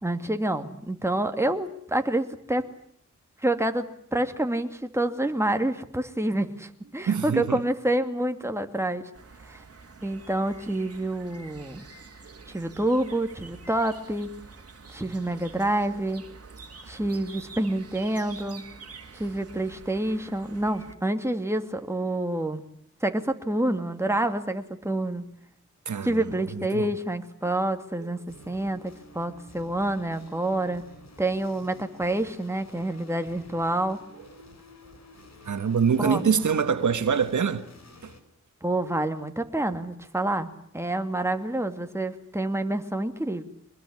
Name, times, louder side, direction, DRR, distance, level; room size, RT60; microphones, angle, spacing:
voice 1, 0.0-2.7 3.4-9.0 9.5-9.6 10.0-11.8 12.5-14.3 14.9-16.2 16.9-18.6 19.1-22.6 23.0-25.2 26.0-30.8 31.2-34.0 36.0-36.3 38.6-40.5 40.7-43.4, right 1 dB, 10° right, 2.4 m, -28 dB
voice 2, 7.1-7.6 25.8-26.9 28.0-28.1 28.5-28.6 35.4-37.7 38.0-38.1, right 6 dB, 75° right, 1.5 m, -25 dB
sound 1, 9.1-21.0, right 4 dB, 55° right, 2.8 m, -47 dB
sound 2, 28.3-38.2, left 2 dB, 60° left, 4.3 m, -51 dB
23.5 x 21.0 x 9.7 m
wide cardioid pair, 75°, 30 cm